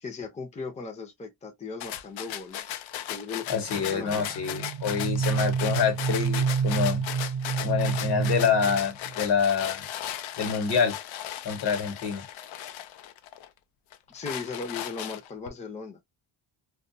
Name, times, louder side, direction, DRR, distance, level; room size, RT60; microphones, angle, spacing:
voice 1, 0.0-2.8 3.1-4.4 14.1-16.0, left 4 dB, 15° left, 0.6 m, -38 dB
sound 1, 1.8-13.5 13.9-15.5, left 11 dB, 85° left, 0.5 m, -37 dB
voice 2, 3.5-7.0 7.6-9.8 10.4-10.9 11.4-12.2, left 6 dB, 60° left, 1.1 m, -26 dB
sound 2, 3.7-9.2, right 6 dB, 50° right, 0.6 m, -29 dB
2.3 x 2.2 x 2.6 m
cardioid pair, 110°, 45 cm